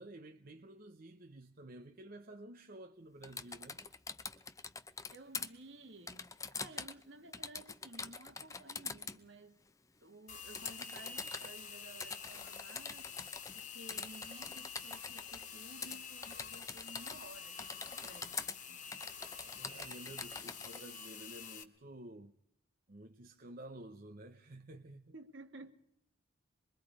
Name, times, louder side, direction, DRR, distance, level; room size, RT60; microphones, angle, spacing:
voice 1, 0.0-3.8 19.4-22.3 22.9-25.1, right 1 dB, 50° right, 0.8 m, -52 dB
Typing, 3.2-5.5 6.1-7.0 7.3-9.2 10.5-11.5 12.0-13.6 13.9-15.5 15.8-16.0 16.2-17.3 17.6-18.6 18.9-20.8, left 5 dB, 15° left, 0.7 m, -44 dB
voice 2, 5.1-9.6 10.0-13.1 13.5-18.8 25.1-25.7, right 2 dB, 65° right, 1.7 m, -55 dB
sound 1, 10.3-21.6, left 6 dB, 40° left, 1.5 m, -48 dB
26.0 x 22.0 x 4.9 m
head